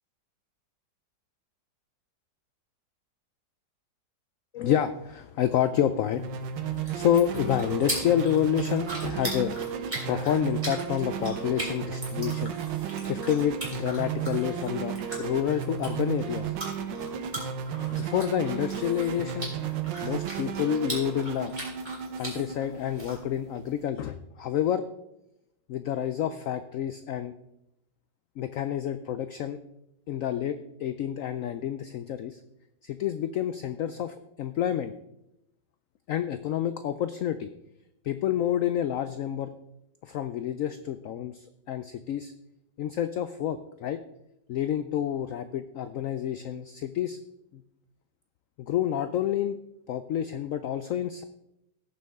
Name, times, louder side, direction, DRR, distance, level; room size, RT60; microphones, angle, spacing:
voice 1, 4.5-9.6 10.1-12.6 13.0-16.5 17.9-19.5 20.0-21.6 22.2-24.8 25.7-27.3 28.4-29.6 30.1-32.4 32.8-34.9 36.1-37.5 38.0-39.5 40.0-42.3 42.8-44.0 44.5-47.2 47.5-47.6 48.6-49.6 49.9-51.2, left 10 dB, 85° left, 11 dB, 0.7 m, -29 dB
sound 1, 6.1-23.9, right 8 dB, 85° right, 1.6 m, -34 dB
sound 2, 6.5-23.1, right 1 dB, 25° right, 3.3 m, -40 dB
16.5 x 7.0 x 3.5 m, 0.85 s
omnidirectional pair, 1.9 m